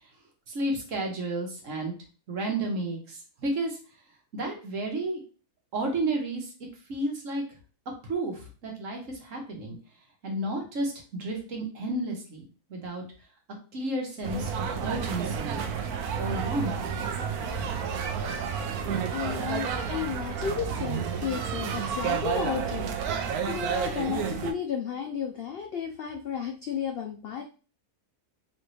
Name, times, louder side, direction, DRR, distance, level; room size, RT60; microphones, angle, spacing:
voice 1, 0.5-1.9 2.3-3.8 4.3-5.2 5.7-6.5 6.9-7.4 8.0-9.8 10.2-12.4 12.7-13.0 13.7-15.6 16.1-16.7 21.6-21.7, right 2 dB, 60° right, 1 dB, 1.5 m, -32 dB
sound 1, 14.2-24.5, right 7 dB, 75° right, 1.1 m, -31 dB
voice 2, 18.7-27.4, left 7 dB, 75° left, 4 dB, 0.5 m, -33 dB
4.3 x 3.2 x 3.2 m, 0.36 s
omnidirectional pair, 1.6 m